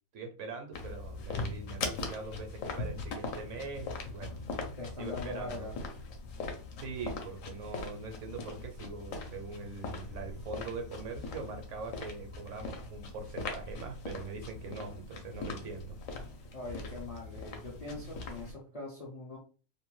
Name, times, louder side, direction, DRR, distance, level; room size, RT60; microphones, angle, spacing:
voice 1, 0.1-4.4 5.0-5.7 6.8-16.0, right 4 dB, 70° right, 5 dB, 0.9 m, -42 dB
sound 1, 0.7-18.5, left 3 dB, 75° left, 1.0 m, -41 dB
voice 2, 4.8-5.8 16.5-19.4, left 2 dB, 50° left, -2 dB, 0.4 m, -42 dB
2.5 x 2.2 x 3.1 m, 0.39 s
omnidirectional pair, 1.4 m